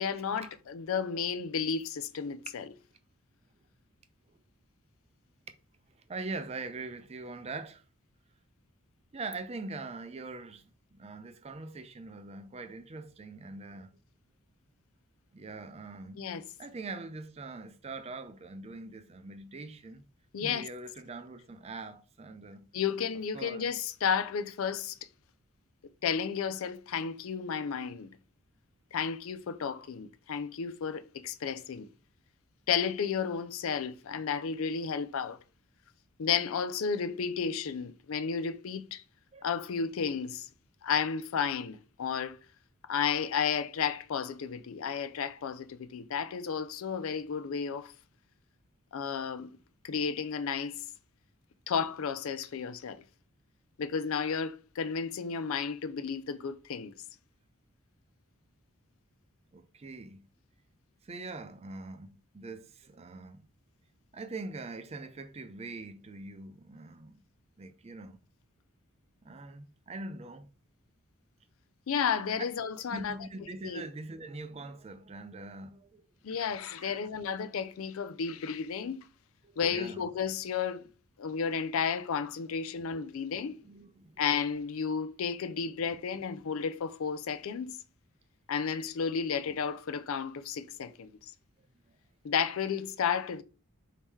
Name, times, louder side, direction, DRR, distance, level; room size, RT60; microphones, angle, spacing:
voice 1, 0.0-2.7 16.2-16.4 20.3-20.7 22.7-25.0 26.0-28.1 28.9-31.9 32.7-35.4 36.2-39.0 39.4-40.5 40.8-42.4 42.9-47.9 48.9-49.6 49.8-50.8 51.7-53.0 53.8-56.9 71.9-73.2 73.6-73.8 76.2-79.1 79.6-80.9 81.2-83.5 84.2-87.8 88.5-91.3 92.2-93.4, left 6 dB, 75° left, 0.4 m, -32 dB
voice 2, 6.1-7.8 9.1-10.6 11.0-13.9 15.3-16.2 16.6-20.0 20.4-22.7 23.3-23.7 39.3-39.5 59.5-60.2 61.0-63.5 64.1-67.2 67.6-68.2 69.2-70.5 72.9-76.0 76.8-77.0 79.4-80.1 83.3-84.2, right 3 dB, 30° right, 0.4 m, -43 dB
4.6 x 2.8 x 3.6 m
head